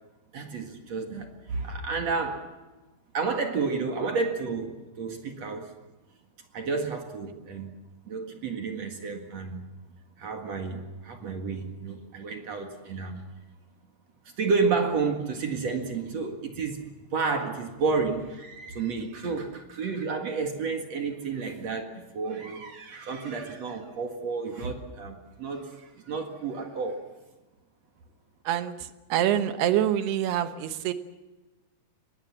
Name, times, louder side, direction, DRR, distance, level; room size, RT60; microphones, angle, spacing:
voice 1, 0.3-2.4 3.1-5.7 6.5-7.7 8.1-9.7 10.2-13.2 14.4-27.0, right 4 dB, 50° right, 4 dB, 2.4 m, -31 dB
voice 2, 28.4-30.9, right 11 dB, 70° right, 10 dB, 3.0 m, -26 dB
24.5 x 21.0 x 7.5 m, 1.1 s
omnidirectional pair, 5.1 m